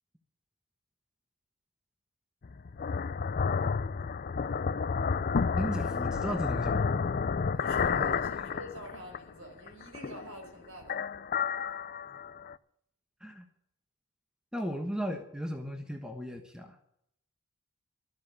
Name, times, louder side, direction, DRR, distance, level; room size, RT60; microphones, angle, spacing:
sound 1, 2.4-9.3 9.7-10.5 10.8-12.5, left 5 dB, 40° left, 0.4 m, -31 dB
voice 1, 5.6-7.1 13.2-13.4 14.5-16.8, equal, 5° right, 4 dB, 1.2 m, -35 dB
voice 2, 7.5-11.0, right 1 dB, 65° right, 3 dB, 4.7 m, -46 dB
13.0 x 7.4 x 9.8 m, 0.74 s
head